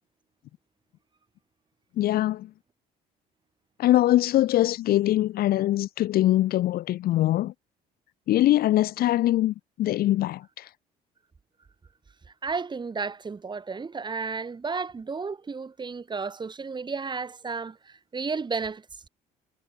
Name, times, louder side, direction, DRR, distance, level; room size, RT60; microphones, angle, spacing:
voice 1, 2.0-2.5 3.8-7.5 8.3-10.7, left 14 dB, 65° left, 0.7 m, -23 dB
voice 2, 12.4-19.1, right 4 dB, 25° right, 4.5 m, -33 dB
cardioid pair, 110°, 17 cm